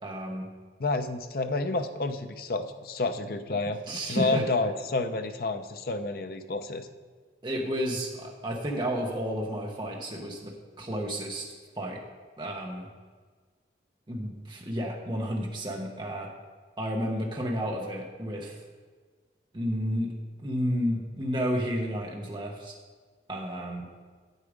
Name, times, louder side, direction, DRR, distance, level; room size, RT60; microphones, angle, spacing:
voice 1, 0.0-0.5 3.9-4.4 7.4-11.5 11.8-12.0 12.4-12.9 14.1-16.3 16.8-18.6 19.5-20.1 20.4-22.7 23.3-23.9, equal, 25° right, -1 dB, 0.9 m, -31 dB
voice 2, 0.8-3.8 4.1-6.9, left 2 dB, 55° left, 8 dB, 0.6 m, -29 dB
8.3 x 8.2 x 5.0 m, 1.5 s
head